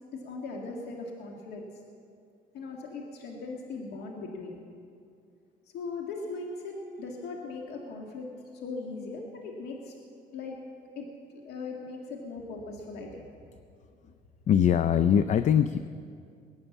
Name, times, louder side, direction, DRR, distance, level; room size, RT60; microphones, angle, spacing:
voice 1, 0.2-1.6 2.5-4.6 5.7-8.3 8.6-10.0 10.3-10.6 11.0-11.1 11.3-13.3, left 3 dB, 75° left, 0 dB, 2.0 m, -39 dB
voice 2, 14.5-15.9, left 8 dB, 45° left, 12 dB, 0.5 m, -22 dB
21.0 x 9.1 x 7.2 m, 2.4 s
cardioid pair, 110°, 17 cm